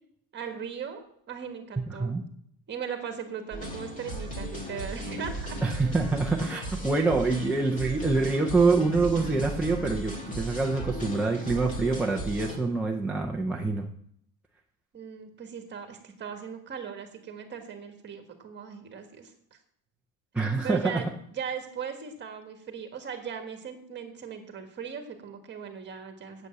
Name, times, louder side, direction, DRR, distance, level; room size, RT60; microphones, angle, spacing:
voice 1, 0.3-1.0 1.3-2.2 2.7-5.6 14.9-19.3 20.6-26.5, right 7 dB, 25° right, 5 dB, 1.5 m, -38 dB
voice 2, 1.9-2.2 5.6-13.9 20.3-21.0, right 3 dB, 5° right, -1 dB, 0.4 m, -26 dB
sound 1, 3.5-12.6, right 1 dB, 15° left, 1.9 m, -36 dB
8.2 x 8.2 x 7.5 m, 0.69 s
cardioid pair, 170°, 44 cm